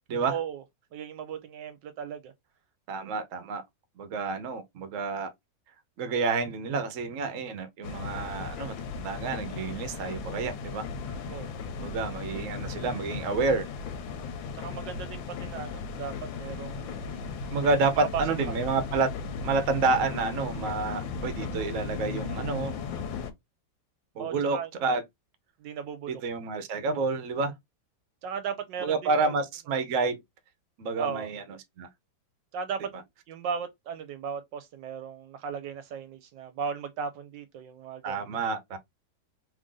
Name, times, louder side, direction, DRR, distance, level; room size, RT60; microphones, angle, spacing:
voice 1, 0.3-0.6 0.9-2.3 11.3-11.5 14.5-17.2 17.9-18.6 24.2-24.7 25.6-26.2 28.2-29.3 31.0-31.3 32.5-32.9 33.3-38.5, right 7 dB, 75° right, 1.2 m, -36 dB
voice 2, 2.9-3.6 4.0-5.3 6.0-10.9 11.8-13.7 17.5-19.1 19.4-22.7 24.1-25.0 26.1-27.5 28.8-30.2 30.8-31.4 31.8-31.9 38.0-38.8, right 4 dB, 60° right, 0.9 m, -29 dB
sound 1, 7.8-23.3, left 5 dB, 90° left, 1.4 m, -36 dB
3.2 x 2.6 x 3.7 m
omnidirectional pair, 2.1 m